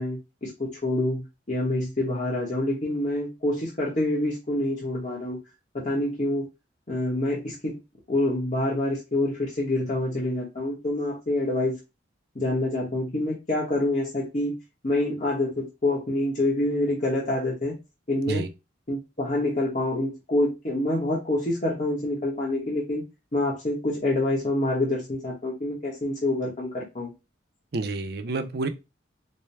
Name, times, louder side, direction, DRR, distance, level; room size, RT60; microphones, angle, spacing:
voice 1, 0.0-5.4 5.7-6.5 6.9-7.8 8.1-11.8 12.3-14.5 14.8-17.8 18.1-18.4 18.9-23.0 23.3-27.1, left 1 dB, 40° left, 1.0 m, -26 dB
voice 2, 27.7-28.7, right 3 dB, 55° right, 0.5 m, -29 dB
4.3 x 2.2 x 3.2 m
head